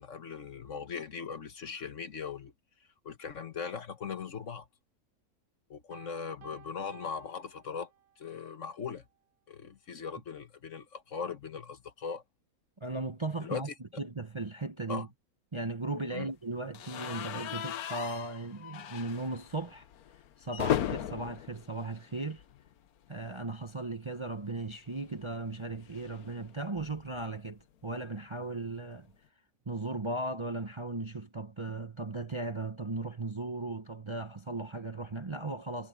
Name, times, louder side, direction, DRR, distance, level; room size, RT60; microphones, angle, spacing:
voice 1, 0.0-2.5 3.0-4.7 5.7-7.9 8.2-9.0 9.5-12.2 13.4-13.7 14.9-15.1 16.1-16.3, left 6 dB, 60° left, 1.6 m, -39 dB
Piano, 5.9-8.3, right 10 dB, 70° right, 1.3 m, -56 dB
voice 2, 12.8-13.7 14.0-15.1 15.5-19.9 20.4-22.4 23.1-29.1 29.7-35.9, right 2 dB, 25° right, 0.8 m, -37 dB
sound 1, 16.7-22.8 23.1-23.3 23.5-23.6 24.9-27.2, left 11 dB, 80° left, 1.3 m, -38 dB
omnidirectional pair, 1.5 m